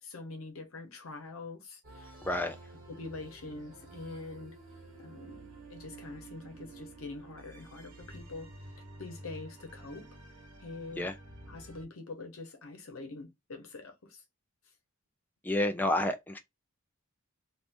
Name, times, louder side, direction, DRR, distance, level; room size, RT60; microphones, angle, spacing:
voice 1, 0.0-2.1 2.9-4.6 5.0-8.5 9.0-10.1 10.6-11.1 11.5-14.2, left 3 dB, 80° left, 0.9 m, -44 dB
sound 1, 1.8-11.8, right 2 dB, 40° right, 1.3 m, -50 dB
voice 2, 2.2-2.6 10.9-11.2 15.4-16.4, left 1 dB, 10° left, 0.3 m, -30 dB
3.5 x 2.5 x 2.5 m
head